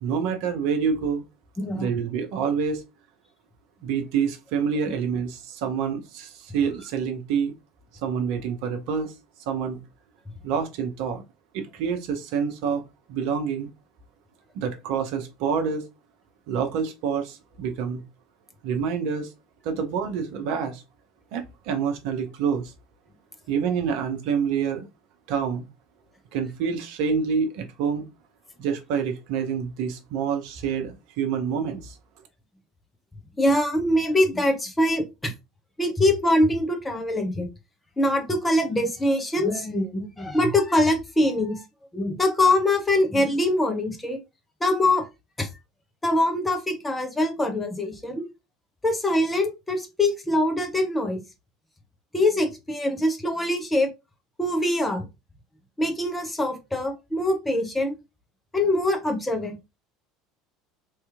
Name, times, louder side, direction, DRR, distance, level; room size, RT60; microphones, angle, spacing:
voice 1, 0.0-1.2 1.7-2.8 3.8-7.5 8.0-9.1 9.5-9.8 10.4-11.2 11.5-12.8 13.1-13.7 14.5-15.9 16.5-18.0 18.6-19.3 19.6-20.8 21.3-22.7 23.5-24.9 25.3-25.7 26.3-28.0 28.6-32.0, right 6 dB, 55° right, 0.8 m, -27 dB
voice 2, 1.6-1.9 33.4-35.3 35.8-37.5 38.0-41.6 41.9-44.2 44.6-45.0 45.4-45.5 46.0-48.3 48.8-51.2 52.1-53.9 54.4-55.1 55.8-57.9 58.5-59.5, left 1 dB, 15° left, 1.1 m, -23 dB
3.2 x 2.9 x 3.6 m
figure-of-eight pair, 70°, 0 cm